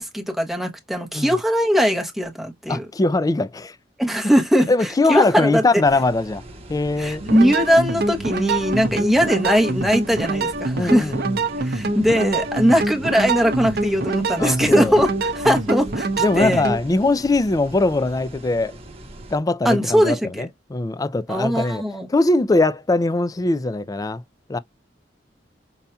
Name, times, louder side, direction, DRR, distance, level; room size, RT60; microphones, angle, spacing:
voice 1, 0.0-2.9 4.0-5.8 7.0-11.1 11.6-16.1 16.4-16.6 19.6-20.5 21.3-22.1, equal, ahead, 0.9 m, -20 dB
voice 2, 2.7-3.8 4.7-6.4 6.7-7.2 8.8-8.9 10.7-11.3 14.4-15.0 16.2-18.8 19.3-21.8 22.1-24.2 24.5-24.6, left 2 dB, 20° left, 0.3 m, -21 dB
sound 1, 5.8-19.4, right 1 dB, 35° right, 1.0 m, -41 dB
sound 2, 7.2-16.8, right 3 dB, 60° right, 0.7 m, -25 dB
5.5 x 2.7 x 2.2 m
head